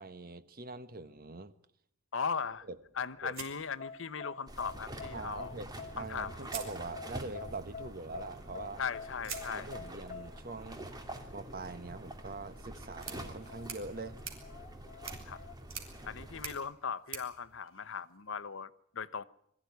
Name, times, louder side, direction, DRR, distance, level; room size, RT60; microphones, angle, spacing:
voice 1, 0.0-1.5 2.7-2.8 3.2-3.3 5.1-8.8 9.5-10.8 11.3-14.2, right 3 dB, 45° right, 1.3 m, -43 dB
voice 2, 2.1-2.7 2.9-5.5 6.0-6.5 8.8-9.8 15.3-15.4 16.0-19.2, left 6 dB, 65° left, 0.9 m, -38 dB
sound 1, 3.3-4.5 5.8-5.9 6.4-7.4 9.2-18.4, right 7 dB, 70° right, 3.9 m, -49 dB
sound 2, 3.6-15.5, left 5 dB, 35° left, 2.0 m, -49 dB
sound 3, 4.5-16.6, right 1 dB, 20° right, 2.8 m, -47 dB
22.5 x 14.5 x 9.4 m
head